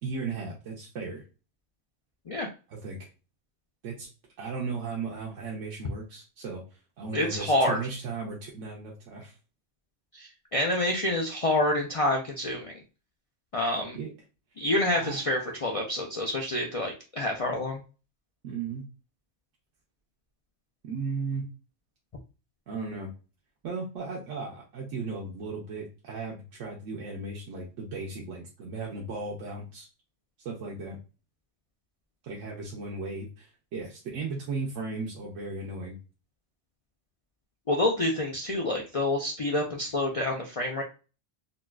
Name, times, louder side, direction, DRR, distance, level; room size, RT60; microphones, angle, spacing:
voice 1, 0.0-1.2 2.7-3.1 3.8-4.1 4.4-6.6 7.0-9.4 13.9-14.1 14.9-15.5 18.4-18.9 20.8-21.5 22.7-23.1 23.6-29.9 30.4-31.0 32.2-35.9, right 4 dB, 85° right, -2 dB, 1.1 m, -36 dB
voice 2, 7.1-7.8 10.1-12.7 13.5-14.0 14.6-17.8 37.7-40.8, left 1 dB, 60° left, 1 dB, 0.3 m, -27 dB
4.0 x 2.3 x 2.2 m, 0.33 s
omnidirectional pair, 1.3 m